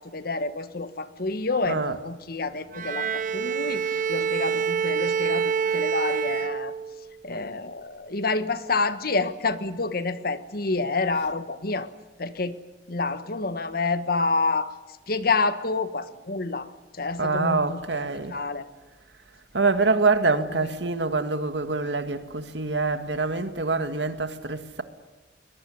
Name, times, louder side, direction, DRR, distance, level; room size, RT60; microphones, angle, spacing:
voice 1, 0.0-6.7 7.2-11.9 12.2-12.6 12.9-14.7 15.1-16.7 16.9-17.9 18.3-18.7, left 3 dB, 60° left, 1.4 m, -28 dB
voice 2, 1.7-2.0 17.2-18.4 19.5-24.8, right 3 dB, 80° right, 1.9 m, -25 dB
Bowed string instrument, 2.7-7.2, right 6 dB, 50° right, 1.1 m, -26 dB
22.5 x 21.5 x 9.8 m
head